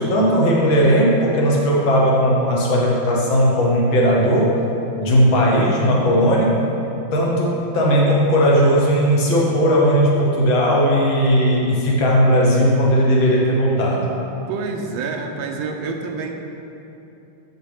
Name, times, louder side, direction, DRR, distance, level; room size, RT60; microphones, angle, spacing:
voice 1, 0.0-4.5 5.0-6.5 7.1-14.1, equal, 75° left, -3 dB, 1.8 m, -17 dB
voice 2, 14.5-16.3, right 4 dB, 75° right, 3 dB, 1.4 m, -27 dB
7.2 x 6.4 x 3.4 m, 2.9 s
omnidirectional pair, 2.2 m